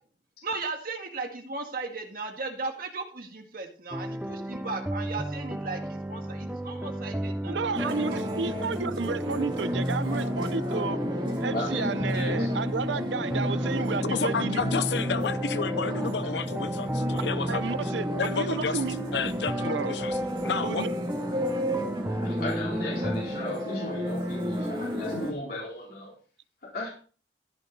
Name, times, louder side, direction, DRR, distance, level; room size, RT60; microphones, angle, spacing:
voice 1, 0.4-8.2, right 3 dB, 50° right, 2.0 m, -36 dB
sound 1, 3.9-23.2, equal, 5° right, 0.6 m, -33 dB
voice 2, 7.5-11.0 11.4-14.6 17.5-18.1 18.3-19.0 19.6-19.9 20.6-20.9, right 4 dB, 90° right, 0.7 m, -32 dB
sound 2, 7.7-25.3, equal, 25° right, 2.3 m, -32 dB
voice 3, 11.5-12.5 16.2-16.4 22.2-26.2 26.6-26.9, left 1 dB, 55° left, 4.2 m, -36 dB
voice 4, 14.0-17.6 18.2-18.8 19.1-20.8, left 5 dB, 70° left, 0.7 m, -31 dB
14.5 x 6.6 x 4.0 m
head